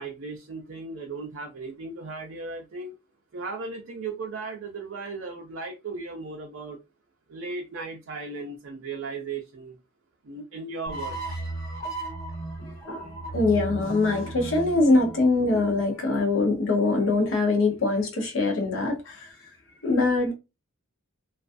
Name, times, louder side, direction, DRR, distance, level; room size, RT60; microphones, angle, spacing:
voice 1, 0.0-2.9 3.3-6.8 7.3-9.8 10.2-11.4, right 3 dB, 60° right, 0.4 m, -36 dB
sound 1, 10.9-16.1, right 2 dB, 45° left, 1.1 m, -36 dB
voice 2, 12.9-19.3 19.8-20.3, left 3 dB, 65° left, 0.7 m, -23 dB
2.3 x 2.3 x 2.5 m
head